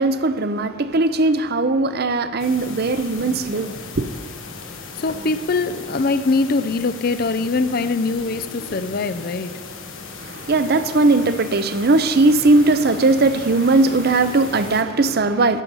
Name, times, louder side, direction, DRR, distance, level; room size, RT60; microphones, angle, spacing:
voice 1, 0.0-4.1 10.2-15.6, right 2 dB, 50° right, 0.6 m, -18 dB
sound 1, 2.4-14.8, left 4 dB, 75° left, 1.2 m, -37 dB
voice 2, 4.9-9.5, left 3 dB, 45° left, 0.5 m, -22 dB
12.5 x 8.9 x 5.5 m
head